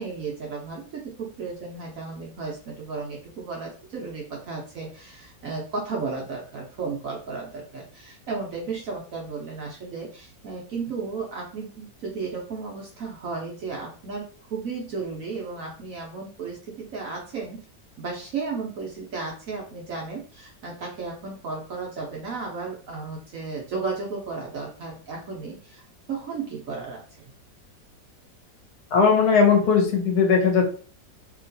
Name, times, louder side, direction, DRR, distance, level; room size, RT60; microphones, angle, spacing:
voice 1, 0.0-17.6 18.0-25.8 26.1-27.3, right 4 dB, 60° right, -2 dB, 0.9 m, -34 dB
voice 2, 28.9-30.7, left 5 dB, 65° left, 1 dB, 1.2 m, -18 dB
2.9 x 2.8 x 2.6 m, 0.41 s
omnidirectional pair, 1.9 m